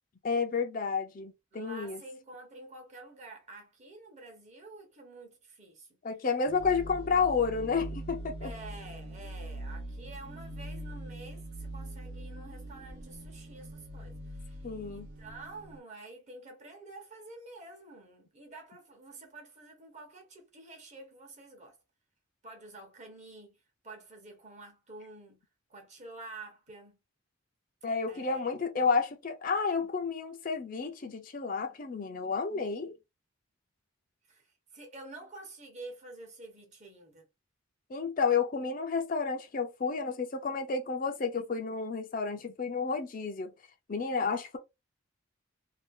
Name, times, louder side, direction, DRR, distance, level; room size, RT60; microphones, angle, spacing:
voice 1, 0.2-2.0 6.0-8.5 14.6-15.1 27.8-32.9 37.9-43.5 43.9-44.6, left 5 dB, 40° left, 0.5 m, -31 dB
voice 2, 1.5-5.9 8.4-21.8 22.4-23.6 23.8-25.4 25.7-27.0 28.1-28.4 34.3-34.5 34.7-37.2, right 2 dB, 35° right, 1.0 m, -49 dB
sound 1, 6.5-15.8, right 1 dB, 55° right, 0.6 m, -43 dB
2.7 x 2.3 x 3.6 m
head